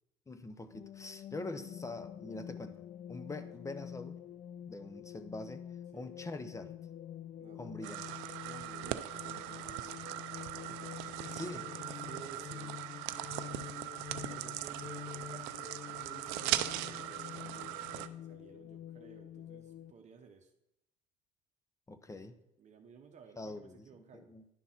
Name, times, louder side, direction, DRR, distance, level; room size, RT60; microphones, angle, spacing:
voice 1, 0.3-2.8 3.1-4.2 4.7-5.6 5.9-6.7 7.6-8.0 11.3-11.7 21.9-22.3 23.4-23.9 24.1-24.4, left 2 dB, 15° left, 10 dB, 0.9 m, -44 dB
sound 1, 0.7-19.9, left 10 dB, 40° left, 0.4 m, -47 dB
voice 2, 7.4-7.9 8.4-10.5 11.9-12.8 14.3-20.5 22.6-24.3, right 6 dB, 40° right, 4 dB, 1.0 m, -55 dB
sound 2, 7.8-18.1, right 15 dB, 75° right, 0.5 m, -39 dB
11.0 x 4.0 x 5.8 m, 0.84 s
supercardioid pair, 80°, 18 cm